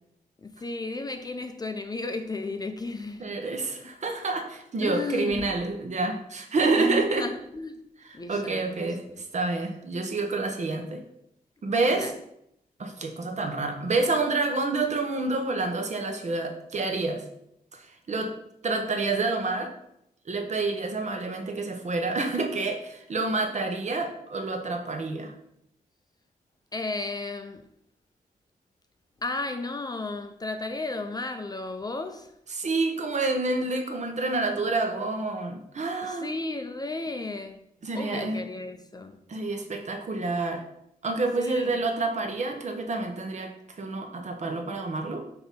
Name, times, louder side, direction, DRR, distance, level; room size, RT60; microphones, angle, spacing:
voice 1, 0.4-3.3 3.8-3.9 4.8-5.4 6.8-7.8 8.1-9.2 11.9-12.2 26.7-27.7 29.2-32.3 36.0-37.6 37.9-39.2 41.4-41.7, left 3 dB, 25° left, 0.4 m, -34 dB
voice 2, 3.2-7.3 8.3-9.0 9.3-11.0 11.6-12.1 12.8-17.2 17.7-17.8 18.1-18.3 18.6-19.7 20.3-25.3 32.5-36.3 37.8-38.4 39.3-40.6 41.0-43.5 43.8-45.3, right 3 dB, 50° right, 0.9 m, -28 dB
6.2 x 2.9 x 5.4 m
wide cardioid pair, 125°, 16 cm